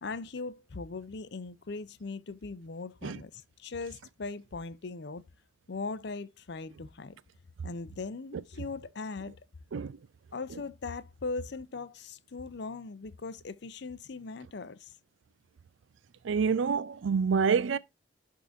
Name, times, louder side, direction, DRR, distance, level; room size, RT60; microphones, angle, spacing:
voice 1, 0.0-5.2 5.7-7.2 7.6-9.4 10.3-14.9, left 3 dB, 65° left, 0.6 m, -39 dB
voice 2, 16.2-17.8, right 6 dB, 85° right, 0.4 m, -27 dB
11.0 x 3.8 x 2.6 m
head